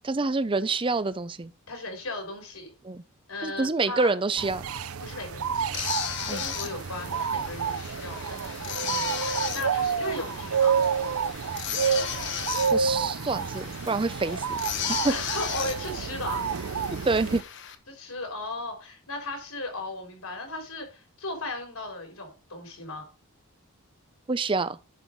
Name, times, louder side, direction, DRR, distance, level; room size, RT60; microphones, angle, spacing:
voice 1, 0.0-1.5 2.8-3.0 3.4-4.6 6.3-6.4 12.7-14.6 14.9-15.1 17.0-17.4 24.3-24.8, right 3 dB, 25° right, 0.5 m, -27 dB
voice 2, 1.7-2.7 3.3-4.1 5.0-10.8 15.1-16.4 17.9-23.1, left 2 dB, 75° left, 3.8 m, -37 dB
sound 1, 4.4-17.4, right 6 dB, 75° right, 0.6 m, -29 dB
sound 2, 5.7-17.8, left 9 dB, 55° left, 1.1 m, -36 dB
11.0 x 4.5 x 5.3 m
head